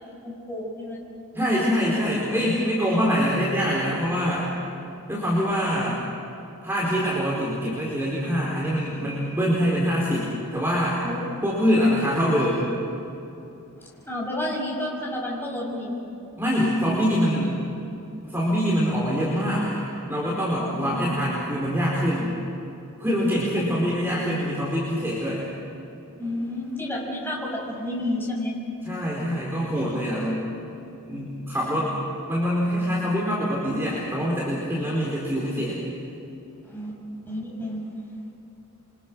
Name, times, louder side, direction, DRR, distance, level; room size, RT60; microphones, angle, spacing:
voice 1, 0.2-1.1 1.4-1.8 11.0-11.1 14.1-15.9 20.5-21.0 26.2-28.6 36.6-37.0 37.2-37.8, left 1 dB, 10° left, -4 dB, 6.6 m, -31 dB
voice 2, 1.3-4.5 5.1-6.0 6.6-11.0 11.4-12.7 16.4-17.5 18.2-22.3 23.0-25.5 28.8-30.5 31.1-31.9 32.3-35.8, equal, 10° right, -6 dB, 4.6 m, -24 dB
28.5 x 25.0 x 6.3 m, 2.9 s
head